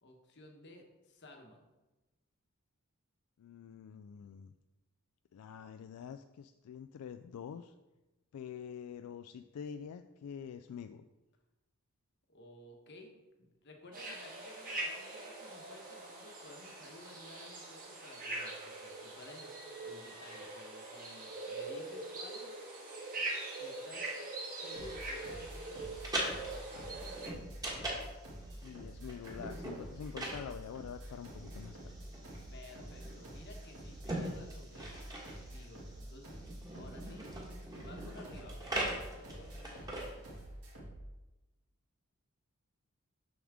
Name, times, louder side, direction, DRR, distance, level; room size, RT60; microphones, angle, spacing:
voice 1, 0.0-1.6 12.3-22.5 23.2-23.3 23.6-24.2 24.5-26.0 26.3-27.0 32.5-37.3 37.8-40.2, left 1 dB, 50° left, 3 dB, 1.1 m, -55 dB
voice 2, 3.4-4.5 5.3-7.7 8.3-11.1 28.6-31.9, left 7 dB, 80° left, 9 dB, 0.3 m, -46 dB
sound 1, 13.9-27.3, right 2 dB, 40° right, 1.4 m, -43 dB
sound 2, 24.8-41.1, right 1 dB, 70° right, 2.2 m, -48 dB
sound 3, 25.8-40.4, right 1 dB, 15° right, 1.3 m, -42 dB
7.0 x 6.4 x 3.6 m, 1.1 s
head